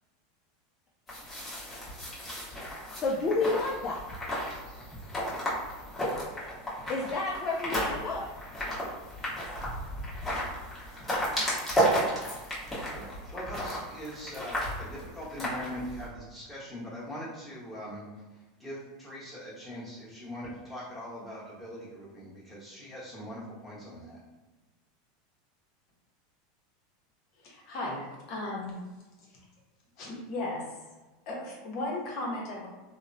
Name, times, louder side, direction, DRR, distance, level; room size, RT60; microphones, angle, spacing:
sound 1, 1.1-16.1, equal, 15° left, 1.0 m, -33 dB
voice 1, 3.0-4.0 6.9-8.3, left 3 dB, 30° left, -2 dB, 0.4 m, -30 dB
voice 2, 12.9-18.0 18.6-24.2, equal, ahead, -9 dB, 1.1 m, -41 dB
voice 3, 27.4-28.8 30.0-30.6 31.3-32.7, left 2 dB, 55° left, -3 dB, 0.8 m, -35 dB
2.9 x 2.1 x 2.5 m, 1.2 s
supercardioid pair, 125°, 0 cm